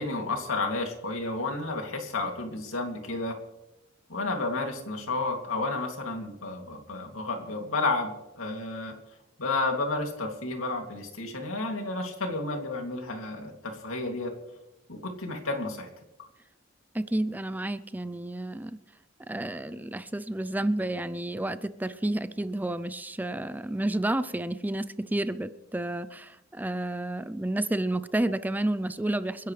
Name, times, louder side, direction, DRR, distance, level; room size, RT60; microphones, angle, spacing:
voice 1, 0.0-3.3 4.1-8.1 8.4-8.9 9.4-14.3 14.9-15.9, left 2 dB, 85° left, 3 dB, 2.7 m, -31 dB
voice 2, 16.9-18.8 19.3-29.5, right 1 dB, 10° right, 14 dB, 0.4 m, -30 dB
29.5 x 10.5 x 3.3 m, 0.94 s
head